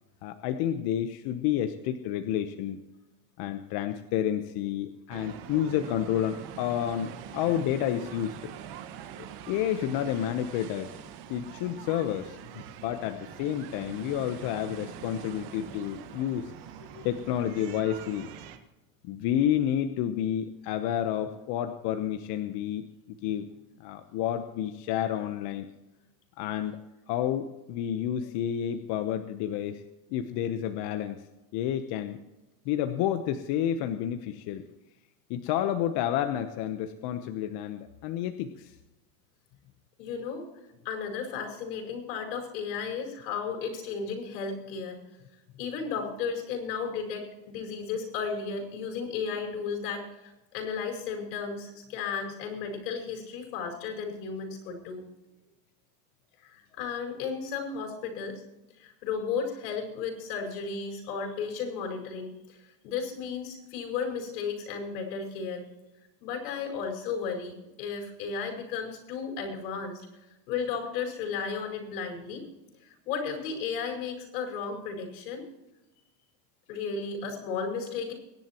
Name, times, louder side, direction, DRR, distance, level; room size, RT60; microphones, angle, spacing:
voice 1, 0.2-2.8 3.4-8.5 9.5-11.0 11.3-16.5 16.9-18.3 19.0-22.9 23.2-23.5 23.8-25.7 26.4-26.8 27.1-29.8 30.1-31.2 31.5-32.2 32.6-34.6 35.3-38.7, left 10 dB, 50° left, 8 dB, 1.0 m, -30 dB
sound 1, 5.1-18.6, right 10 dB, 60° right, 1.7 m, -44 dB
voice 2, 40.0-40.5 40.8-45.0 45.6-55.1 56.4-58.4 58.8-65.7 66.2-70.0 70.5-72.5 72.8-75.5 76.7-78.1, left 5 dB, 85° left, 2 dB, 5.3 m, -34 dB
24.0 x 11.0 x 3.0 m, 1.0 s
supercardioid pair, 135°, 48 cm